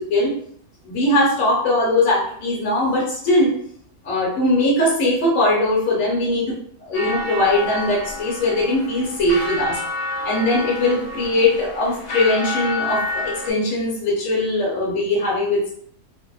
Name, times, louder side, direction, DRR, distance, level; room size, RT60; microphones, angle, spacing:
voice 1, 0.8-3.5 4.0-6.5 6.8-9.8 10.2-15.7, left 1 dB, 65° left, -5 dB, 1.1 m, -20 dB
sound 1, 6.9-13.5, left 2 dB, 85° left, 0.3 m, -29 dB
2.6 x 2.1 x 2.3 m, 0.65 s
omnidirectional pair, 1.6 m